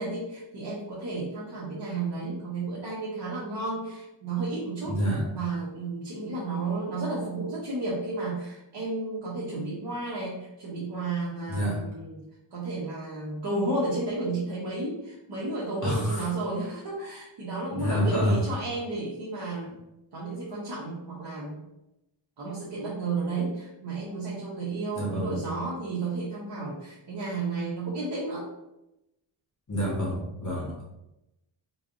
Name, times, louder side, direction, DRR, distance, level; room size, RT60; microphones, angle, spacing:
voice 1, 0.0-5.0 5.3-12.2 12.5-19.7 20.1-21.6 22.4-28.5, right 3 dB, 55° right, -7 dB, 1.0 m, -32 dB
voice 2, 4.8-5.2 11.5-11.8 15.8-16.3 17.7-18.4 24.9-25.4 29.7-30.8, equal, 35° left, -5 dB, 1.4 m, -27 dB
3.8 x 3.3 x 2.6 m, 0.90 s
wide cardioid pair, 95°, 49 cm